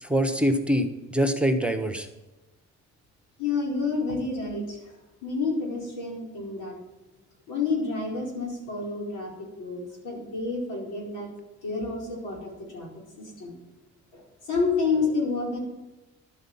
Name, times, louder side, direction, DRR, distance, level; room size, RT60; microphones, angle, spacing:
voice 1, 0.0-2.1, equal, 5° right, 7 dB, 1.3 m, -24 dB
voice 2, 3.4-4.8 5.2-6.8 7.5-11.3 11.6-12.9 13.2-13.5 14.1-15.6, left 4 dB, 90° left, -1 dB, 4.6 m, -29 dB
12.0 x 8.0 x 7.3 m, 1.1 s
cardioid pair, 90°, 30 cm